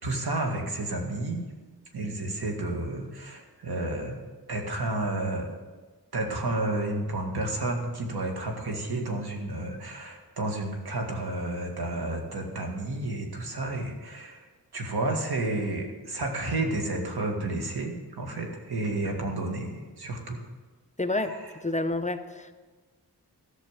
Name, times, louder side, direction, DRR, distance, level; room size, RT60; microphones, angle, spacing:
voice 1, 0.0-1.4 1.9-4.2 4.5-5.5 6.1-20.4 21.1-21.5, right 2 dB, 85° right, 2 dB, 1.9 m, -31 dB
voice 2, 21.0-21.3 21.6-22.5, left 2 dB, 20° left, 8 dB, 0.6 m, -29 dB
13.0 x 6.5 x 7.4 m, 1.3 s
wide cardioid pair, 90°, 38 cm